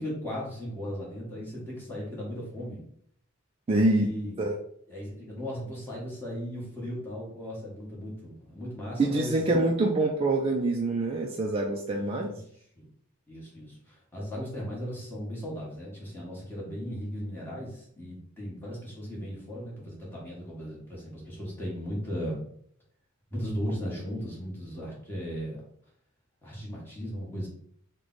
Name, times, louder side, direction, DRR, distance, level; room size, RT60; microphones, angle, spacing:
voice 1, 0.0-2.8 3.7-4.4 4.9-9.3 11.9-12.4 12.7-12.9 13.3-22.4 23.3-25.6 26.4-27.5, equal, 10° left, -6 dB, 1.2 m, -37 dB
voice 2, 3.7-4.1 4.4-4.5 9.0-12.3, right 2 dB, 25° right, 0 dB, 0.3 m, -25 dB
3.1 x 2.2 x 3.8 m, 0.66 s
head